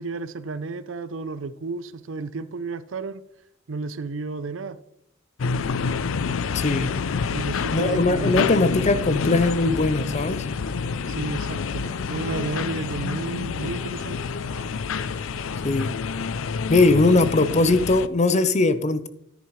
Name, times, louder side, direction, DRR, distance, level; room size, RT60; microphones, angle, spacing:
voice 1, 0.0-3.2 3.7-4.8 7.3-8.6 11.1-14.2, right 3 dB, 70° right, 0.6 m, -32 dB
sound 1, 5.4-18.1, left 5 dB, 85° left, 0.5 m, -28 dB
voice 2, 6.5-6.9 7.7-10.5 15.6-15.9 16.7-19.1, left 2 dB, 35° left, 0.6 m, -20 dB
sound 2, 9.7-16.5 16.8-17.1, equal, 20° left, 3.8 m, -48 dB
10.5 x 10.0 x 3.1 m
head